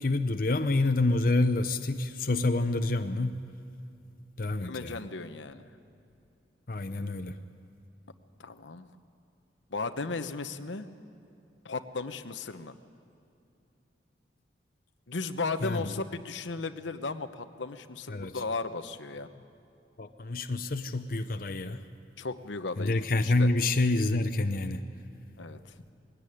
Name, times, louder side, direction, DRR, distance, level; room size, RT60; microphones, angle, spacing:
voice 1, 0.0-3.4 4.4-5.0 6.7-7.4 15.6-15.9 18.1-18.4 20.0-21.8 22.8-24.8, left 2 dB, 50° left, 8 dB, 0.7 m, -28 dB
voice 2, 4.6-5.6 8.4-8.9 9.7-10.9 11.6-12.7 15.1-19.3 22.2-23.5 25.4-25.7, left 3 dB, 85° left, 9 dB, 1.0 m, -35 dB
20.5 x 17.0 x 10.0 m, 2.7 s
head